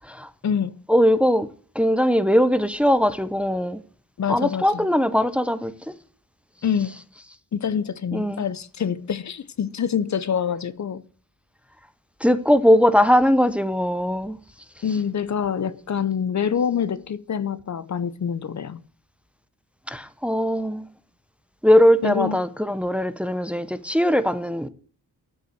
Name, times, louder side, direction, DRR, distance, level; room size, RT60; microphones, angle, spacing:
voice 1, 0.9-1.5 1.8-3.8 4.3-5.7 8.1-8.4 12.2-14.4 19.9-20.9 21.6-24.7, equal, 5° right, 0.6 m, -20 dB
voice 2, 4.2-4.9 6.6-7.0 7.5-11.0 14.8-18.8 22.0-22.4, left 7 dB, 50° left, 0.6 m, -26 dB
9.3 x 8.4 x 7.9 m
wide cardioid pair, 140°, 35 cm